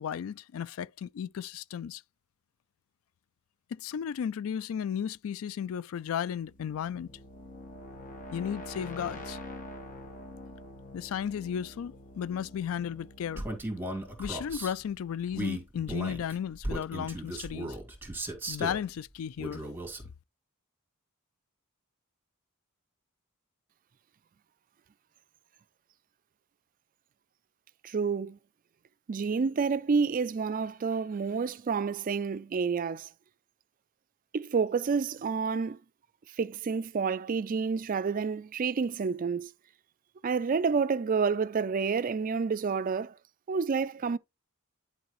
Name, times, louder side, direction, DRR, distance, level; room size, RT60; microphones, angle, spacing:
voice 1, 0.0-2.0 3.7-7.1 8.3-9.4 10.9-13.4 14.2-17.8 18.5-19.6, left 8 dB, 70° left, 0.3 m, -34 dB
sound 1, 6.3-15.1, left 1 dB, 40° left, 1.5 m, -46 dB
Male speech man speaking, 13.4-14.7 15.3-18.8 19.4-20.1, right 1 dB, 10° right, 2.0 m, -36 dB
voice 2, 27.8-28.4 29.1-33.1 34.3-35.8 36.4-39.5 40.2-43.1 43.5-44.2, right 5 dB, 40° right, 0.4 m, -29 dB
10.5 x 4.8 x 3.1 m
head